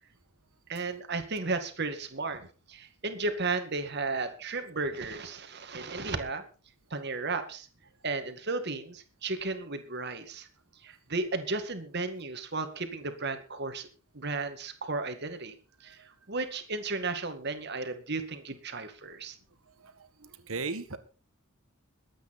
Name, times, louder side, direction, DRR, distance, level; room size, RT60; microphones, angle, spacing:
voice 1, 0.7-2.4 2.7-6.4 6.9-7.7 8.0-10.5 10.8-13.9 14.1-15.5 15.8-16.0 16.3-19.4, right 3 dB, 55° right, 8 dB, 2.1 m, -34 dB
voice 2, 20.2-21.0, right 4 dB, 85° right, 11 dB, 1.8 m, -35 dB
22.0 x 9.1 x 4.3 m, 0.37 s
head